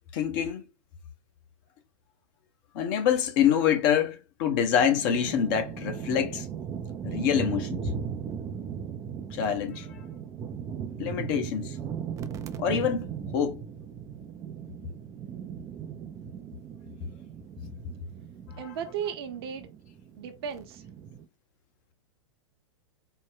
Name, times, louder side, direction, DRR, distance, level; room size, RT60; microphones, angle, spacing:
voice 1, 0.1-0.6 2.7-6.5 7.0-7.8 9.3-9.9 11.0-11.8 12.6-13.6 18.6-18.7, left 8 dB, 45° left, 0.8 m, -26 dB
sound 1, 4.7-21.2, right 8 dB, 20° right, 0.4 m, -38 dB
voice 2, 18.6-19.7 20.2-20.8, right 8 dB, 55° right, 0.9 m, -35 dB
4.3 x 2.1 x 3.7 m
figure-of-eight pair, 105°, 16 cm